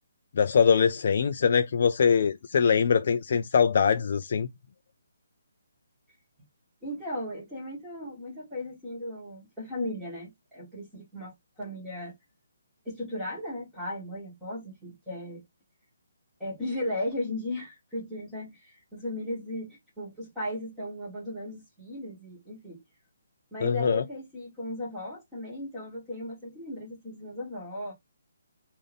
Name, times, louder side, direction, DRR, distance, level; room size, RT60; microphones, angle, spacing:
voice 1, 0.4-4.5 23.6-24.0, left 6 dB, 40° left, 0.3 m, -23 dB
voice 2, 6.8-12.1 12.8-15.4 16.4-22.8 23.5-27.9, left 1 dB, ahead, 1.3 m, -36 dB
3.9 x 2.5 x 3.3 m
hypercardioid pair, 175°, 0 cm